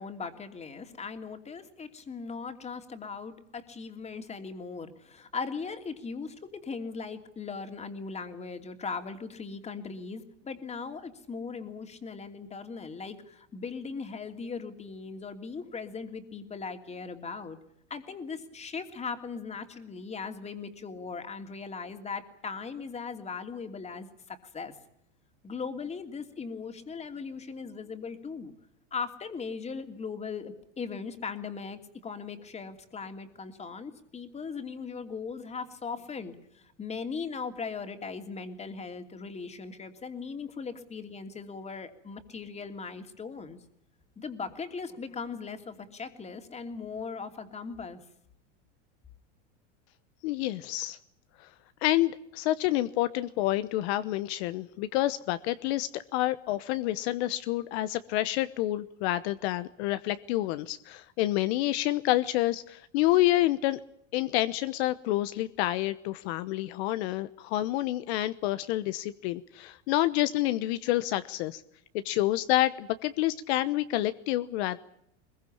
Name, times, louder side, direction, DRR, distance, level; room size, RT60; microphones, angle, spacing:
voice 1, 0.0-17.6 17.9-24.7 25.4-28.5 28.9-43.6 44.2-48.0, left 5 dB, 20° left, 7 dB, 2.9 m, -39 dB
voice 2, 50.2-51.0 51.4-51.5 51.8-63.8 64.1-71.6 72.0-74.8, left 16 dB, 60° left, 13 dB, 1.1 m, -28 dB
22.0 x 21.5 x 8.7 m, 0.74 s
supercardioid pair, 130°, 36 cm